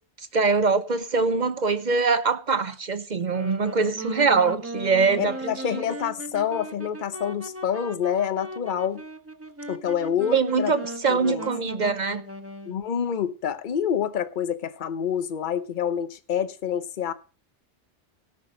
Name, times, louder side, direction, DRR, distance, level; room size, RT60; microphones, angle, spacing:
voice 1, 0.3-5.4 10.3-12.2, right 4 dB, 45° right, 0.8 m, -23 dB
Wind instrument woodwind instrument, 3.2-12.9, right 1 dB, 15° right, 1.1 m, -38 dB
voice 2, 5.2-9.0 9.7-10.7 11.1-11.5 12.7-17.1, left 8 dB, 50° left, 0.9 m, -27 dB
17.5 x 5.9 x 5.1 m
omnidirectional pair, 1.2 m